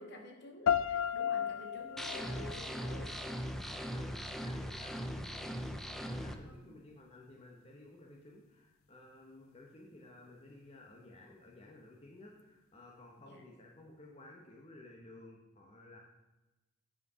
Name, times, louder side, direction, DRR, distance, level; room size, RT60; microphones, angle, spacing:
voice 1, 0.0-3.2 6.5-6.8 13.2-13.4, equal, 55° left, 2 dB, 1.7 m, -51 dB
sound 1, 0.7-3.6, left 8 dB, 85° left, 0.4 m, -35 dB
sound 2, 2.0-6.3, equal, ahead, 0.5 m, -40 dB
voice 2, 3.7-5.6 5.9-16.0, left 2 dB, 30° left, -1 dB, 1.1 m, -55 dB
9.7 x 5.0 x 6.2 m, 1.0 s
head